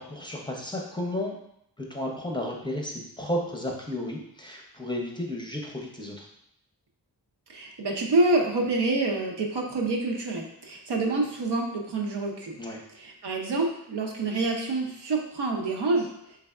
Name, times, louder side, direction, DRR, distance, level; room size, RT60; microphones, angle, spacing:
voice 1, 0.0-1.4 1.9-6.3 12.6-12.8, left 1 dB, 10° left, -1 dB, 0.6 m, -33 dB
voice 2, 7.5-12.6 13.0-16.1, right 2 dB, 80° right, 0 dB, 0.7 m, -27 dB
3.4 x 3.3 x 2.3 m, 0.75 s
wide cardioid pair, 70°, 40 cm